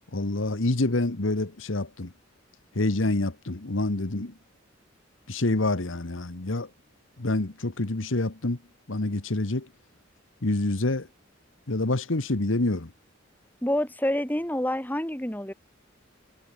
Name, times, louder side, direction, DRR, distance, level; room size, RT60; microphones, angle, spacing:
voice 1, 0.1-2.1 2.7-4.4 5.3-6.7 7.2-8.6 8.9-9.7 10.4-11.1 11.7-12.9, left 2 dB, 75° left, 1.5 m, -27 dB
voice 2, 13.6-15.5, left 1 dB, 10° left, 2.7 m, -27 dB
head